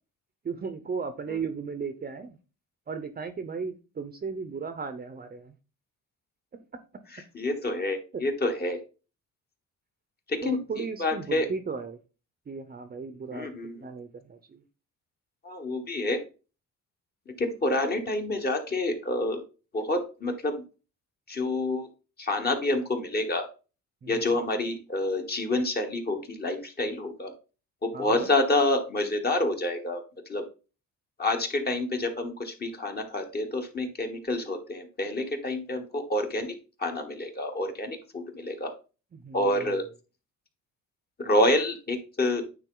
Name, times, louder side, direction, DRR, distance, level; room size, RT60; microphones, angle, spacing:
voice 1, 0.4-2.4 2.9-5.5 10.4-12.0 12.5-13.5 13.8-14.6 24.0-24.4 27.9-28.3 39.1-39.8, right 5 dB, 30° right, 10 dB, 0.7 m, -36 dB
voice 2, 7.3-8.8 10.3-11.5 13.3-13.8 15.4-16.2 17.4-19.4 19.7-20.5 21.3-21.9 22.2-23.5 24.1-27.3 27.8-30.0 30.3-30.4 31.2-36.5 36.8-38.7 39.3-39.8 41.2-42.4, left 2 dB, 30° left, 4 dB, 1.4 m, -28 dB
9.2 x 3.7 x 3.8 m, 0.33 s
cardioid pair, 125°, 31 cm